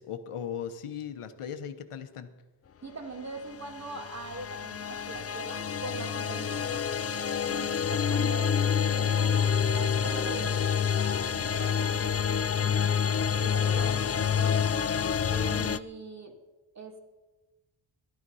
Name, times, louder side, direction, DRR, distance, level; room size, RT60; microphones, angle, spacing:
voice 1, 0.0-2.3, left 8 dB, 85° left, 8 dB, 1.1 m, -38 dB
voice 2, 2.8-6.9 7.5-14.7 15.5-16.4 16.7-17.0, right 3 dB, 35° right, 2 dB, 2.4 m, -42 dB
sound 1, 3.5-15.8, left 7 dB, 35° left, 0.4 m, -28 dB
Wind instrument woodwind instrument, 4.9-11.9, right 20 dB, 60° right, 0.7 m, -46 dB
sound 2, 8.6-15.8, left 1 dB, 15° right, 2.4 m, -46 dB
16.5 x 12.0 x 5.6 m, 1.1 s
wide cardioid pair, 115°, 50 cm